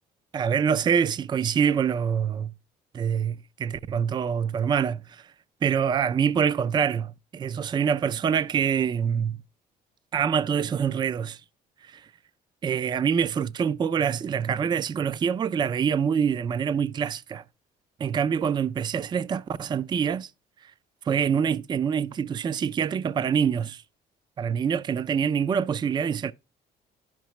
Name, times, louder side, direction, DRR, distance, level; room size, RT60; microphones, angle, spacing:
voice 1, 0.3-2.5 2.9-5.3 5.6-9.4 10.1-11.4 11.8-12.1 12.6-17.4 18.0-20.3 20.6-20.7 21.0-23.8 24.4-26.3, right 7 dB, 25° right, 0.3 m, -25 dB
11.5 x 5.9 x 3.0 m
cardioid pair, 110°, 17 cm